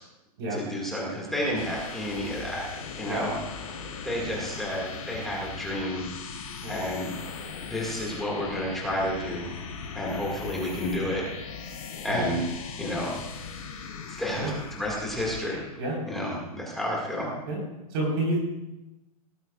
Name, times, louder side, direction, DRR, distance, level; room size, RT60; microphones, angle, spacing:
voice 1, 0.5-2.7 3.0-3.4 4.0-6.1 6.7-7.1 7.7-9.5 9.9-11.2 12.0-12.4 12.8-13.1 14.2-15.6 16.1-17.3, left 1 dB, ahead, -4 dB, 2.0 m, -30 dB
sound 1, 1.3-15.8, left 5 dB, 65° left, 4.0 m, -39 dB
voice 2, 17.9-18.4, right 2 dB, 35° right, -2 dB, 4.3 m, -29 dB
18.5 x 13.0 x 2.4 m, 0.98 s
hypercardioid pair, 175°, 20 cm